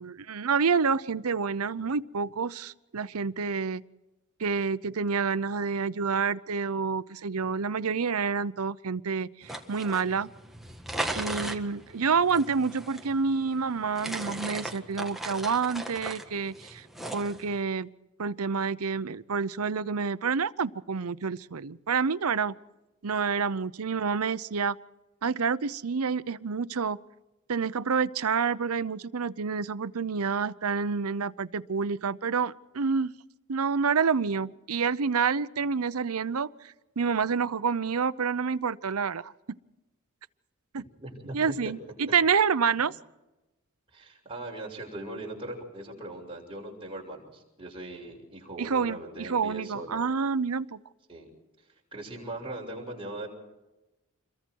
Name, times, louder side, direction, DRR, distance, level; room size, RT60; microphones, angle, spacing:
voice 1, 0.0-3.8 4.4-10.3 11.2-16.9 17.1-17.9 18.2-22.5 23.0-24.8 25.2-27.0 27.5-33.1 33.5-39.3 40.7-40.8 41.3-42.9 48.6-50.8, right 5 dB, 85° right, 16 dB, 0.7 m, -28 dB
sound 1, 9.4-17.6, right 1 dB, ahead, 1.7 m, -38 dB
voice 2, 41.0-41.7 42.1-42.2 42.7-42.8 43.9-50.0 51.1-51.3 51.9-53.3, right 1 dB, 25° right, -1 dB, 6.2 m, -40 dB
27.5 x 22.5 x 4.6 m, 1.0 s
head